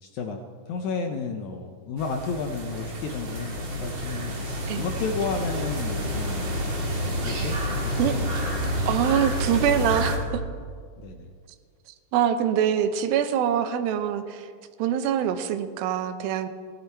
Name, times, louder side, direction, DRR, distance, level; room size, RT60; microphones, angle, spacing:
voice 1, 0.0-6.6 7.2-7.6 7.8-8.3 11.0-11.3, left 4 dB, 75° left, 5 dB, 1.8 m, -32 dB
sound 1, 2.0-10.2, equal, 35° right, 2.1 m, -29 dB
voice 2, 8.9-10.4 12.1-14.5 14.8-16.5, right 9 dB, 85° right, 10 dB, 2.6 m, -24 dB
17.5 x 12.0 x 4.5 m, 2.1 s
omnidirectional pair, 4.2 m